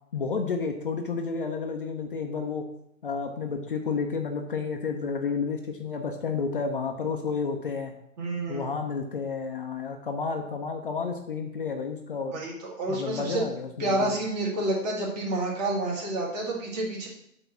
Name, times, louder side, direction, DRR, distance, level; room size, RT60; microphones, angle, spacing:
voice 1, 0.1-2.7 3.0-7.9 8.5-12.4 12.9-14.1, left 5 dB, 40° left, 3 dB, 0.7 m, -31 dB
voice 2, 8.2-8.7 12.3-13.4 13.8-17.1, right 2 dB, 30° right, -2 dB, 1.8 m, -29 dB
8.1 x 2.9 x 6.0 m, 0.76 s
figure-of-eight pair, 135°, 42 cm